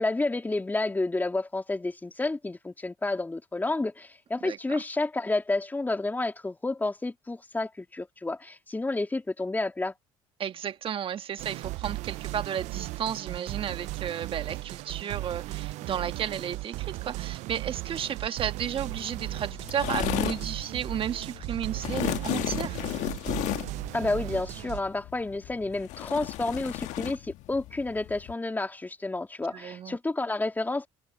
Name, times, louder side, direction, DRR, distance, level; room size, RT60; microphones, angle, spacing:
voice 1, 0.0-9.9 23.9-30.9, left 2 dB, 15° left, 3.1 m, -30 dB
voice 2, 10.4-22.8 29.5-30.0, right 9 dB, 45° right, 1.5 m, -33 dB
sound 1, 11.4-24.8, right 19 dB, 70° right, 0.5 m, -36 dB
sound 2, 18.8-28.3, left 16 dB, 70° left, 1.5 m, -34 dB
supercardioid pair, 90°, 13 cm